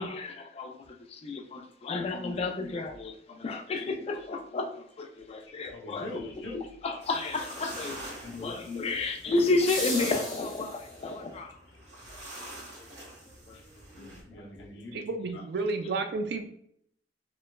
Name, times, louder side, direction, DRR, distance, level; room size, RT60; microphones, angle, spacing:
voice 1, 0.0-6.1 6.8-8.0 8.3-11.6 12.1-12.3 12.8-12.9 13.5-13.6 14.0-14.4, left 3 dB, 35° left, 5 dB, 0.3 m, -32 dB
sound 1, 3.7-3.8 9.3-11.1 13.3-13.4, left 1 dB, 5° left, 0.9 m, -37 dB
voice 2, 5.8-6.6 8.2-8.9 13.9-15.1, left 2 dB, 90° left, -2 dB, 0.7 m, -40 dB
sound 2, 7.0-14.2, right 1 dB, 85° right, 1.5 m, -46 dB
voice 3, 14.9-16.4, right 3 dB, 65° right, 7 dB, 0.4 m, -31 dB
3.1 x 2.0 x 2.2 m, 0.67 s
head